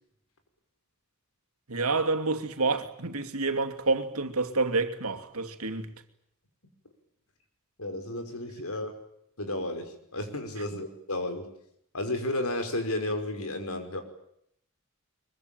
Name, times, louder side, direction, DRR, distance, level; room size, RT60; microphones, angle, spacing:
voice 1, 1.7-5.9, right 3 dB, 85° right, 2.8 m, -28 dB
voice 2, 7.8-9.0 9.4-11.5 11.9-14.0, left 1 dB, 80° left, 5.5 m, -32 dB
24.0 x 23.5 x 9.2 m
head